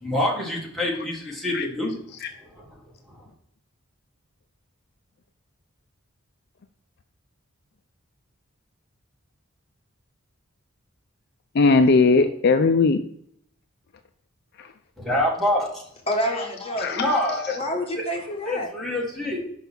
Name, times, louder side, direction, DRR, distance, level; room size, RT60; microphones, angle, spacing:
voice 1, 0.0-1.9 2.6-2.7 15.0-15.8 16.9-17.4 18.5-19.4, left 1 dB, ahead, -3 dB, 1.7 m, -25 dB
voice 2, 11.5-13.0 14.6-14.7 16.8-17.8, left 4 dB, 50° left, 7 dB, 0.5 m, -20 dB
voice 3, 16.1-17.0 17.5-18.7, equal, 25° left, 1 dB, 1.5 m, -28 dB
5.6 x 5.3 x 6.2 m, 0.69 s
head